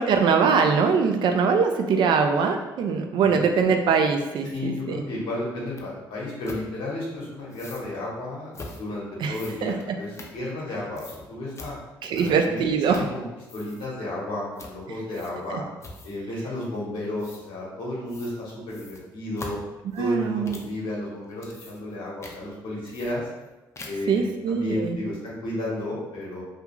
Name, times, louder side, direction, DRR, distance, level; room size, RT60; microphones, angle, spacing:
voice 1, 0.0-5.0 9.2-10.0 12.0-13.0 15.5-15.6 20.0-20.6 24.1-25.0, right 5 dB, 65° right, 5 dB, 0.4 m, -22 dB
voice 2, 4.5-11.8 12.2-12.5 12.9-13.2 13.5-15.6 16.0-19.6 20.0-23.2 23.8-26.4, left 1 dB, 75° left, -5 dB, 1.0 m, -32 dB
sound 1, 5.8-5.9 6.4-6.6 7.5-7.9 8.5-8.8 9.3-10.7 11.0-11.2 11.6-11.7 12.1-12.6 12.9-13.2 13.4-13.9 14.6-14.8 15.1-15.5 15.8-16.3 17.2-17.4 18.1-18.4 18.7-20.8 21.2-22.0 22.2-22.4 22.9-23.5 23.8-24.1, left 2 dB, 35° left, 0.5 m, -42 dB
2.4 x 2.3 x 2.9 m, 1.1 s
supercardioid pair, 60°, 9 cm